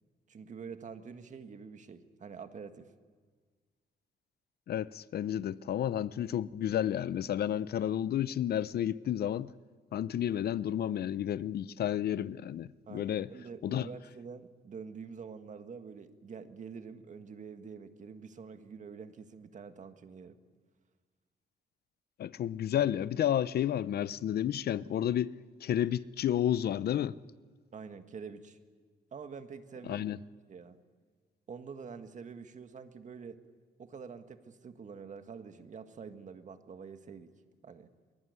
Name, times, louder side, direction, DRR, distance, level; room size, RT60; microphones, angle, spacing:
voice 1, 0.3-2.9 12.9-20.4 27.7-28.6 29.1-30.0 30.5-30.8 31.5-33.4 33.8-37.3 37.6-37.9, right 6 dB, 45° right, 1.8 m, -46 dB
voice 2, 4.7-9.5 9.9-13.3 13.6-13.9 22.2-25.3 25.6-27.2 29.9-30.2, left 10 dB, 65° left, 0.7 m, -31 dB
23.0 x 22.5 x 9.6 m
cardioid pair, 120°, 18 cm